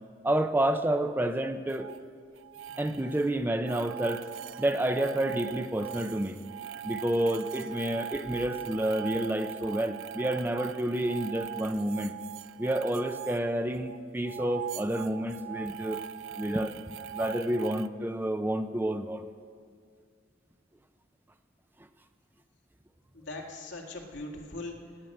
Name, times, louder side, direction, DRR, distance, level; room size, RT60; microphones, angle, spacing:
voice 1, 0.2-1.9 2.8-4.2 4.6-6.4 6.8-12.1 12.6-16.0 16.3-16.8 17.1-19.2, right 1 dB, 10° right, 8 dB, 0.4 m, -29 dB
sound 1, 1.7-2.0 2.4-3.3 3.6-14.0 14.2-17.9, right 10 dB, 90° right, 0.4 m, -41 dB
voice 2, 23.1-25.1, left 2 dB, 75° left, 1 dB, 1.9 m, -41 dB
18.0 x 6.7 x 8.8 m, 2.1 s
head